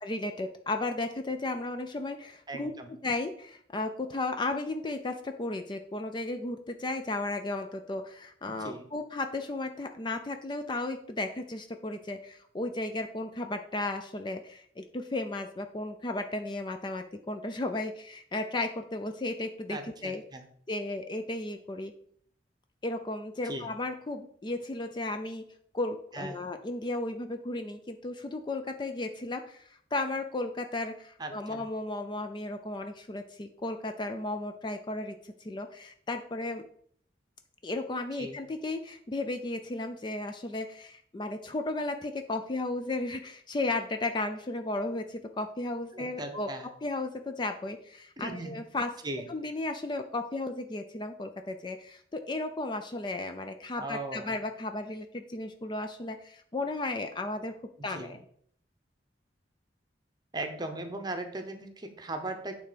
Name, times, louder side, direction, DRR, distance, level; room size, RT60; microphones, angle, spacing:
voice 1, 0.0-2.7 3.0-20.2 20.7-21.9 22.8-25.4 25.7-36.6 37.6-46.5 46.8-48.9 49.3-57.5 57.8-58.2, left 2 dB, 25° left, 6 dB, 0.4 m, -34 dB
voice 2, 2.5-2.9 8.5-8.9 19.7-20.4 23.4-23.7 26.1-26.4 31.2-31.6 38.2-38.4 45.9-46.7 48.2-48.5 49.0-49.3 53.8-54.3 57.8-58.2 60.3-62.5, right 2 dB, 25° right, 6 dB, 0.8 m, -38 dB
9.0 x 3.4 x 5.1 m, 0.63 s
head